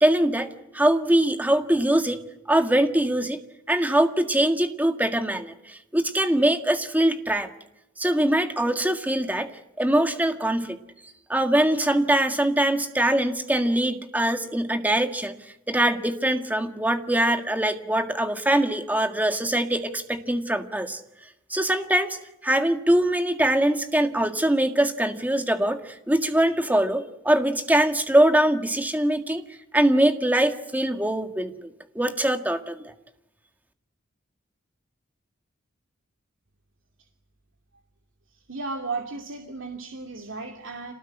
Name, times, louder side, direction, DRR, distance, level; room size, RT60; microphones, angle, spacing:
voice 1, 0.0-2.2 2.5-3.4 3.7-7.5 8.0-9.5 9.8-10.8 11.3-15.3 15.7-21.0 21.5-22.2 22.4-29.4 29.7-31.7 32.0-32.9, right 1 dB, 10° right, 7 dB, 1.8 m, -23 dB
voice 2, 38.3-40.9, right 3 dB, 70° right, 3 dB, 2.6 m, -34 dB
27.0 x 19.5 x 10.0 m, 0.90 s
head